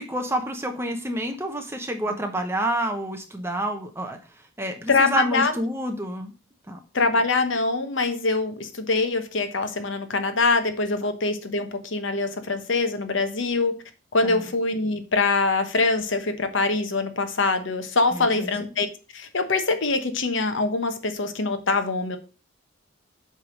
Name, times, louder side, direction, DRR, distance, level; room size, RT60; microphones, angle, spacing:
voice 1, 0.0-4.2 4.6-6.3 6.7-6.8 14.2-14.5 18.1-18.5, right 1 dB, 10° right, 5 dB, 0.9 m, -28 dB
voice 2, 4.9-5.5 6.9-13.7 14.1-18.9 19.1-22.2, left 3 dB, 65° left, 8 dB, 1.1 m, -24 dB
7.5 x 3.6 x 6.4 m, 0.35 s
head